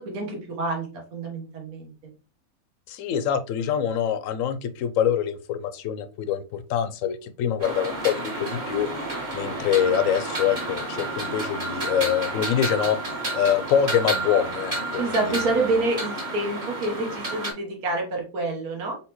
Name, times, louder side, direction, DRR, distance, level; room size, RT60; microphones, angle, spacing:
voice 1, 0.0-1.9 15.0-18.9, right 2 dB, 85° right, 0 dB, 1.6 m, -27 dB
voice 2, 2.9-9.1 9.3-15.4, left 9 dB, 70° left, 10 dB, 0.9 m, -25 dB
sound 1, 7.6-17.5, right 2 dB, 30° right, 1.4 m, -31 dB
4.3 x 3.4 x 3.0 m, 0.34 s
omnidirectional pair, 1.5 m